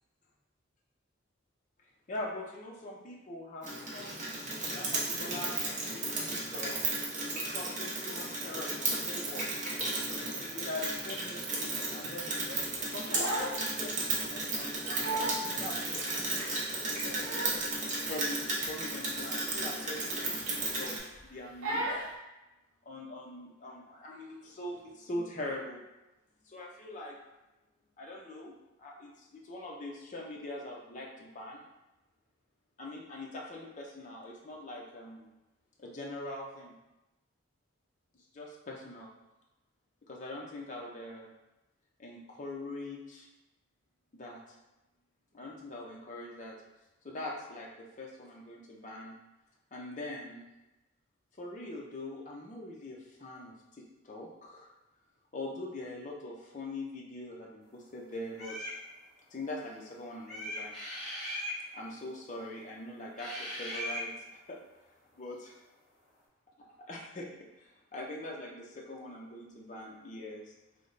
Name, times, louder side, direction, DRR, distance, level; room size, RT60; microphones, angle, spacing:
voice 1, 2.1-4.2 4.7-6.8 7.3-9.5 9.8-16.4 17.0-17.4 18.1-21.0 21.2-22.1 22.9-25.8 26.4-27.2 28.0-28.5 28.8-31.6 32.8-35.3 35.8-36.8 38.1-39.1 40.1-41.3 42.0-43.3 44.1-44.4 45.3-46.5 47.0-49.2 49.7-50.5 51.4-54.7 55.3-58.6 59.3-60.7 61.7-64.1 64.5-64.6 65.1-65.6 66.8-67.3 67.6-70.5, left 1 dB, 35° left, -2 dB, 0.5 m, -43 dB
Rain, 3.6-21.0, right 2 dB, 35° right, 0.6 m, -34 dB
Crying sobbing, 12.8-13.6 14.0-14.2 14.7-14.8 15.0-15.5 16.0-16.1 16.9-17.7 18.0-18.2 18.6-18.7 19.1-19.2 20.0-20.6 20.9-21.2 21.6-22.1, right 1 dB, 80° right, 0.6 m, -35 dB
sound 1, 58.3-58.8 60.3-61.6 63.2-64.1, equal, ahead, 1.1 m, -38 dB
3.2 x 2.0 x 3.8 m, 0.99 s
head